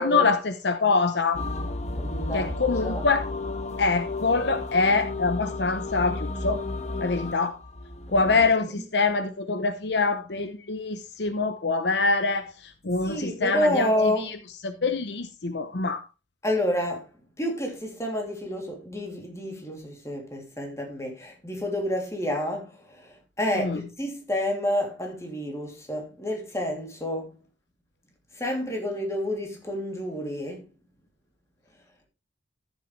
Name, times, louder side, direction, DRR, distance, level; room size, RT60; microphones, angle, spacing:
voice 1, 0.0-1.4 2.3-3.2 3.8-6.6 7.0-7.6 8.1-14.1 14.6-16.0 23.6-23.8, left 4 dB, 65° left, 0.9 m, -25 dB
sound 1, 1.3-8.5, left 2 dB, 40° left, 1.4 m, -33 dB
voice 2, 2.0-3.0 8.1-8.3 13.0-14.3 16.4-17.1 17.4-27.4 28.3-30.6, left 1 dB, 15° left, 3.0 m, -29 dB
13.5 x 7.4 x 3.3 m
head